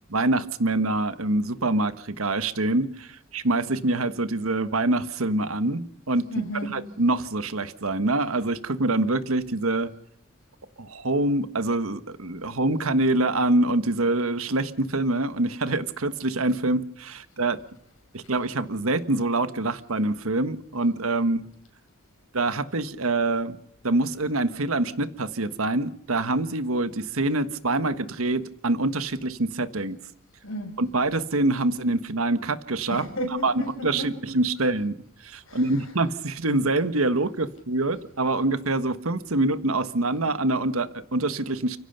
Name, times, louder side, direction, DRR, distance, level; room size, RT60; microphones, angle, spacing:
voice 1, 0.1-6.2 6.6-9.9 10.8-17.6 18.1-21.4 22.3-23.6 23.8-30.0 30.8-33.0 33.4-34.9 35.2-41.8, right 2 dB, 80° right, 1.4 m, -25 dB
voice 2, 6.3-6.8 30.4-30.8 32.9-34.1 35.5-35.7, equal, 70° left, 6.7 m, -33 dB
30.0 x 16.5 x 6.8 m
head